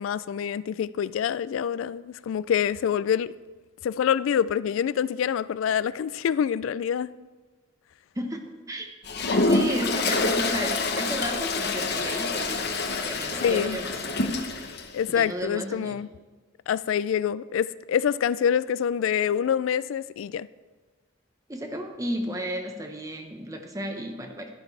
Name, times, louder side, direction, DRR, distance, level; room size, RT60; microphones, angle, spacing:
voice 1, 0.0-3.3 3.8-7.1 13.4-13.8 14.9-16.1 16.7-20.5, left 8 dB, 90° left, 0.3 m, -26 dB
voice 2, 8.1-8.9 9.5-12.7 13.0-14.0 15.1-16.0 21.5-24.5, right 1 dB, 15° right, 1.0 m, -33 dB
Toilet flush, 9.0-14.9, left 3 dB, 55° left, 0.9 m, -26 dB
12.0 x 11.0 x 3.3 m
head